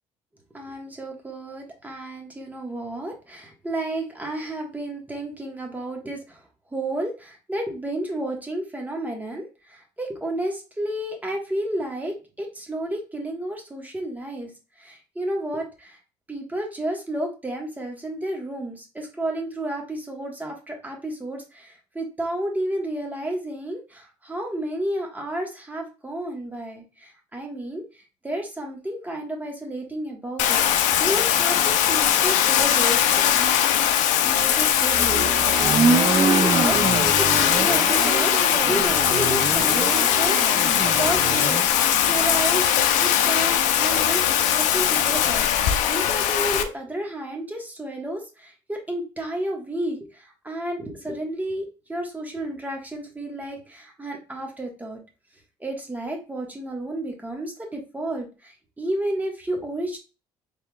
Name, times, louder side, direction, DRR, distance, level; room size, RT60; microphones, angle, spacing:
voice 1, 0.5-6.4 6.7-14.5 14.8-16.0 16.3-27.8 28.2-30.6 31.0-35.3 35.8-38.3 38.6-41.6 42.0-42.6 42.9-55.0 55.6-60.0, right 1 dB, 15° right, 1 dB, 1.5 m, -31 dB
Bathtub (filling or washing), 30.4-46.6, left 10 dB, 75° left, 0.5 m, -20 dB
sound 1, 34.9-41.7, right 5 dB, 35° right, 0.6 m, -25 dB
4.5 x 3.5 x 2.3 m, 0.31 s
supercardioid pair, 80°, 13 cm